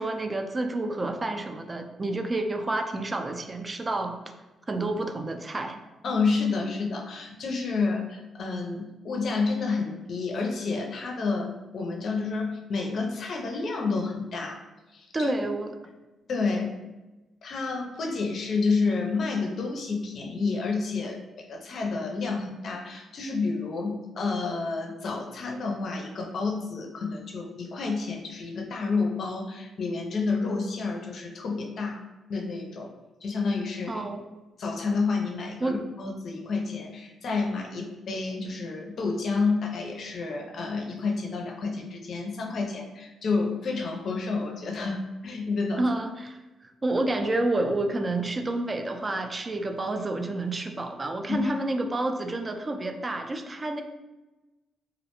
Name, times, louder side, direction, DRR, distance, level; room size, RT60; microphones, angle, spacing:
voice 1, 0.0-4.1 4.7-5.8 15.1-15.7 33.9-34.2 35.6-35.8 45.8-53.8, right 2 dB, 30° right, 5 dB, 0.3 m, -29 dB
voice 2, 6.0-14.6 14.9-15.3 16.3-16.7 17.4-32.0 32.3-32.9 33.2-34.0 34.6-45.8 51.3-51.5, left 4 dB, 60° left, 1 dB, 0.4 m, -29 dB
2.4 x 2.1 x 2.9 m, 1.1 s
cardioid pair, 70°, 0 cm